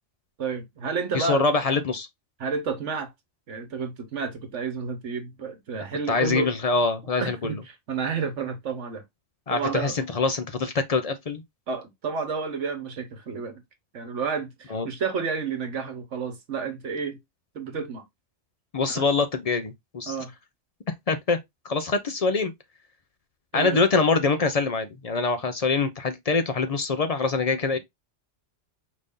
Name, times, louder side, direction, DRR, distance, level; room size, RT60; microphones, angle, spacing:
voice 1, 0.4-1.4 2.4-3.1 3.5-6.5 7.2-9.0 9.5-10.0 11.7-13.6 13.9-17.2 17.5-18.0 18.9-19.0 20.1-20.3 23.5-23.8, right 5 dB, 75° right, 1.4 m, -30 dB
voice 2, 1.1-2.1 6.1-7.5 9.5-11.4 14.7-14.9 18.7-20.1 21.1-21.4 21.6-22.5 23.5-27.8, left 4 dB, 50° left, 0.4 m, -24 dB
5.1 x 2.7 x 3.6 m
omnidirectional pair, 1.3 m